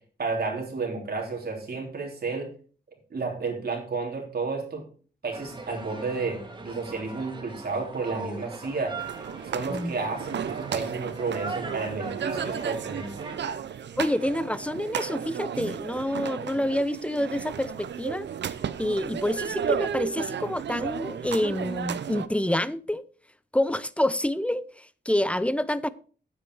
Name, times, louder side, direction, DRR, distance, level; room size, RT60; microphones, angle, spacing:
voice 1, 0.2-2.5 3.1-4.8 5.2-6.4 6.6-8.9 9.5-13.1, right 4 dB, 60° right, 3.5 m, -31 dB
sound 1, 5.3-13.5, right 3 dB, 25° right, 1.9 m, -40 dB
sound 2, 9.0-22.3, right 8 dB, 85° right, 0.6 m, -34 dB
voice 2, 14.0-18.3 18.8-23.0 23.5-25.9, left 1 dB, 5° left, 0.5 m, -27 dB
9.7 x 8.3 x 4.7 m
wide cardioid pair, 120°, 18 cm